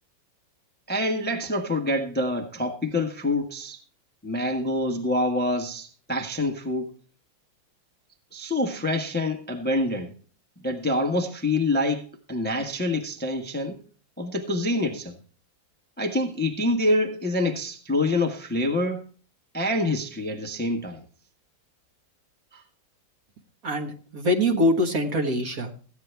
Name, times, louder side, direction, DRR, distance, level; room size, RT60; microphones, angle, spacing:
voice 1, 0.9-3.8 4.2-6.9 8.3-10.1 10.6-13.8 14.2-15.2 16.0-19.0 19.5-21.0 22.5-22.6, left 1 dB, 5° left, 1.0 m, -26 dB
voice 2, 23.6-25.7, equal, 50° right, 1.7 m, -24 dB
15.0 x 9.5 x 3.3 m
omnidirectional pair, 2.1 m